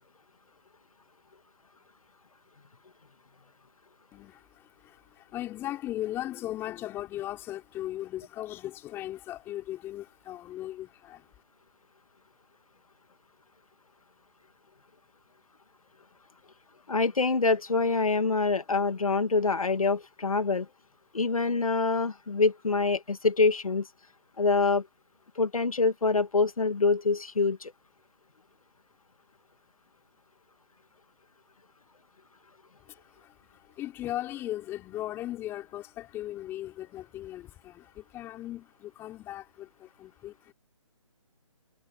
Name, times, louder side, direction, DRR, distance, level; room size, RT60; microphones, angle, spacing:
voice 1, 4.1-11.3 32.8-40.5, left 14 dB, 15° left, 5.5 m, -38 dB
voice 2, 16.9-20.7 21.1-23.9 24.4-24.9 25.4-27.7, left 4 dB, 90° left, 1.9 m, -25 dB
hypercardioid pair, 160°, 17 cm